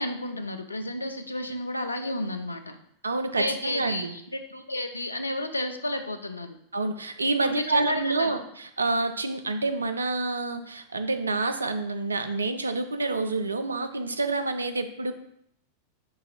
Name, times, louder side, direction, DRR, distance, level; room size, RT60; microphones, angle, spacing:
voice 1, 0.0-2.8 3.4-6.6 7.4-8.4, left 1 dB, 80° left, 7 dB, 0.4 m, -31 dB
voice 2, 3.0-4.2 6.7-15.1, right 3 dB, 75° right, 8 dB, 0.3 m, -28 dB
4.6 x 2.5 x 4.1 m, 0.72 s
figure-of-eight pair, 90°, 0 cm